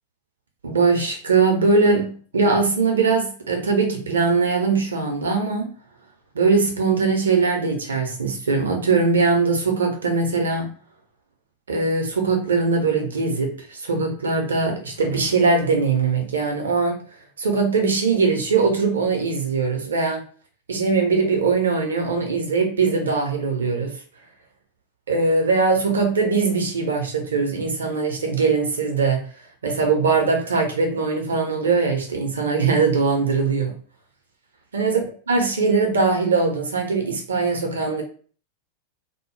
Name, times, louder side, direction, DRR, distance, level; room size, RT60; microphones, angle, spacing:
voice 1, 0.6-5.7 6.3-10.7 11.7-17.0 17.4-20.2 20.7-23.9 25.1-29.2 29.6-33.7 34.7-35.0 35.3-38.0, right 4 dB, 70° right, 2 dB, 0.6 m, -21 dB
2.1 x 2.0 x 3.0 m, 0.42 s
figure-of-eight pair, 90°, 0 cm